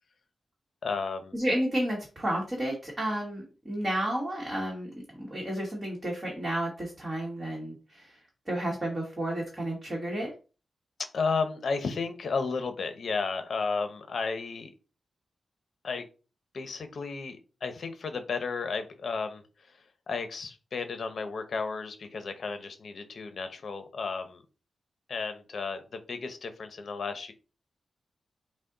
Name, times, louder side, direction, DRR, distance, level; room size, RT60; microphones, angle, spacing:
voice 1, 0.8-1.3 11.0-14.7 15.8-16.0 16.5-24.4 25.1-27.3, left 4 dB, 55° left, 8 dB, 0.7 m, -33 dB
voice 2, 1.3-4.9 5.2-8.2 8.5-10.3, right 1 dB, 20° right, -3 dB, 1.2 m, -31 dB
6.1 x 2.1 x 3.9 m, 0.34 s
wide cardioid pair, 175°, 0 cm